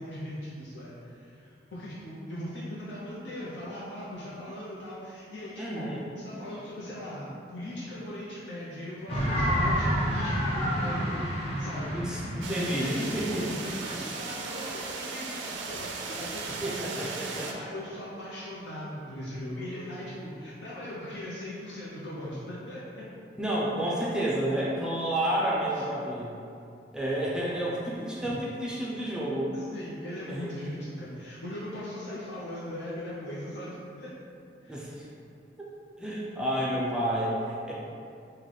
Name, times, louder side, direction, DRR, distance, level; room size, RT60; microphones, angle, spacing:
voice 1, 0.0-5.9 6.2-11.2 11.6-12.0 12.3-16.4 17.0-23.0 23.8-24.0 28.2-28.3 29.7-34.1 34.6-34.8, left 1 dB, 85° left, -9 dB, 0.6 m, -39 dB
voice 2, 5.6-6.0 11.9-13.5 16.6-17.5 23.4-26.3 26.9-29.5 30.3-30.5 34.7-35.1 36.0-37.7, right 1 dB, 5° right, -6 dB, 0.4 m, -30 dB
sound 1, 9.1-14.0, equal, 35° left, 0.6 m, -29 dB
sound 2, 12.4-17.5, right 4 dB, 85° right, 0.4 m, -37 dB
3.2 x 2.2 x 3.8 m, 2.5 s
head